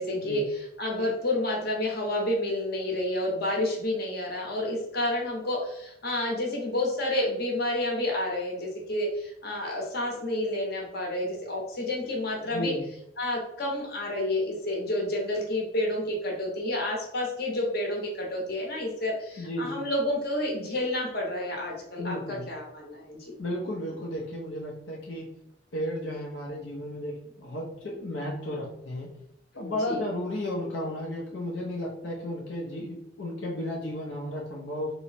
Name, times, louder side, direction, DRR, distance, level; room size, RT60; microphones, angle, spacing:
voice 1, 0.0-12.7 13.2-23.2 29.5-30.0, left 1 dB, 55° left, -2 dB, 1.0 m, -30 dB
voice 2, 12.4-12.9 19.4-19.8 22.0-22.5 23.4-25.3 25.7-29.1 29.6-34.9, left 1 dB, 85° left, -3 dB, 0.7 m, -34 dB
3.1 x 2.0 x 4.1 m, 0.75 s
head